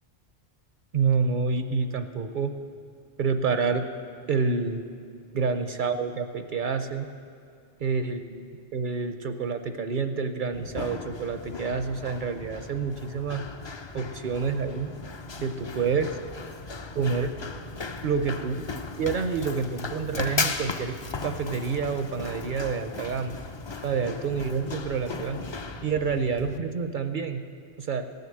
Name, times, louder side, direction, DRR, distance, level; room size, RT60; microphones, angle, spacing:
voice 1, 0.9-2.5 3.2-3.8 4.3-4.8 5.3-7.1 7.8-13.4 13.9-14.9 15.4-16.1 16.9-17.3 18.0-18.6 19.0-20.9 21.2-23.3 23.8-25.4 25.8-27.4 27.8-28.1, right 5 dB, 55° right, 8 dB, 0.6 m, -28 dB
Run, 10.5-26.6, left 4 dB, 40° left, 0.4 m, -36 dB
17.5 x 6.6 x 7.7 m, 2.5 s
omnidirectional pair, 1.2 m